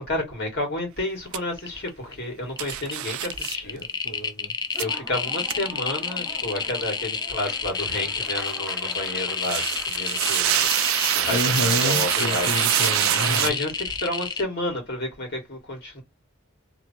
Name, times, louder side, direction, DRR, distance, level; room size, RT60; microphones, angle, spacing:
voice 1, 0.0-3.9 4.8-10.7 11.1-12.6 13.3-16.0, left 1 dB, 50° left, 1.8 m, -31 dB
sound 1, 1.0-1.3 1.5-2.1 2.5-14.4, left 5 dB, 20° left, 0.3 m, -29 dB
sound 2, 1.3-1.4 2.6-3.6 4.8-4.9 5.5-5.6 9.4-13.5, right 13 dB, 70° right, 0.3 m, -24 dB
voice 2, 3.6-4.5 11.3-13.5, left 1 dB, 75° left, 1.2 m, -29 dB
Laughter / Applause, 4.6-13.0, right 1 dB, ahead, 0.7 m, -43 dB
3.1 x 2.5 x 2.6 m
head